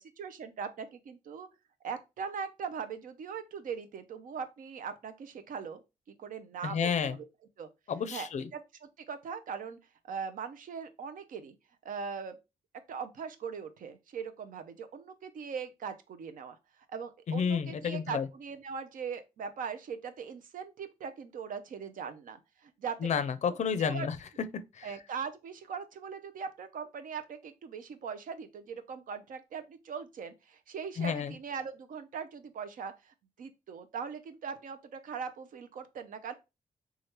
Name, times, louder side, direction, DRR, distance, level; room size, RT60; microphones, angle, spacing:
voice 1, 0.0-1.5 1.8-5.8 6.1-7.3 7.6-7.7 8.1-8.3 8.5-8.6 9.1-9.8 10.1-11.6 11.8-12.4 12.9-16.6 16.9-23.0 23.8-24.1 24.8-36.3, right 6 dB, 70° right, 0.5 m, -40 dB
voice 2, 6.6-7.2 7.9-8.5 17.3-18.3 23.0-24.2 24.8-24.9 31.0-31.4, left 6 dB, 55° left, 0.4 m, -30 dB
3.1 x 2.3 x 2.9 m
cardioid pair, 80°, 14 cm